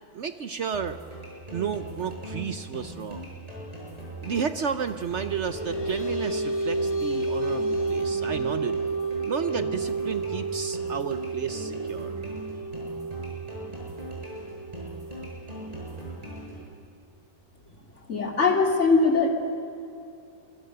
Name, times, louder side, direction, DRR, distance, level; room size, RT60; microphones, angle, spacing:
voice 1, 0.1-1.0 1.5-3.3 4.2-8.8 9.3-12.1, right 7 dB, 55° right, 11 dB, 0.9 m, -32 dB
sound 1, 0.7-16.7, right 1 dB, 25° right, 7.2 m, -40 dB
sound 2, 5.2-16.1, right 3 dB, 75° left, 2.1 m, -31 dB
voice 2, 18.1-19.3, left 4 dB, 50° left, 3 dB, 3.2 m, -21 dB
26.0 x 22.0 x 6.7 m, 2.6 s
omnidirectional pair, 1.6 m